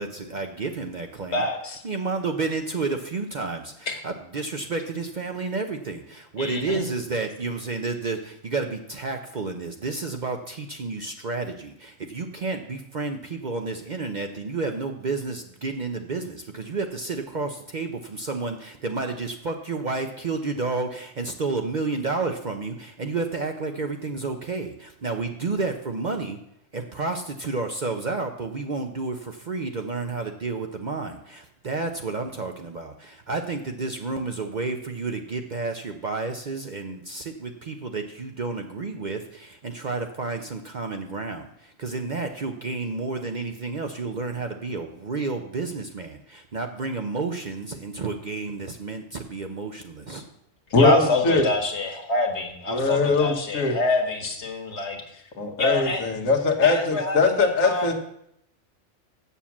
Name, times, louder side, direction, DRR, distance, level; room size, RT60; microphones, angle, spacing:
voice 1, 0.0-1.4 1.8-26.4 26.7-50.2, right 3 dB, 45° right, 5 dB, 0.6 m, -31 dB
voice 2, 1.3-1.8 3.9-4.0 6.4-6.9 50.7-55.2 55.6-56.0 56.6-57.9, left 2 dB, 60° left, 4 dB, 1.7 m, -26 dB
voice 3, 50.7-51.5 52.7-53.7 55.4-57.9, left 3 dB, 85° left, 4 dB, 1.6 m, -21 dB
7.3 x 7.1 x 7.2 m, 0.76 s
omnidirectional pair, 1.3 m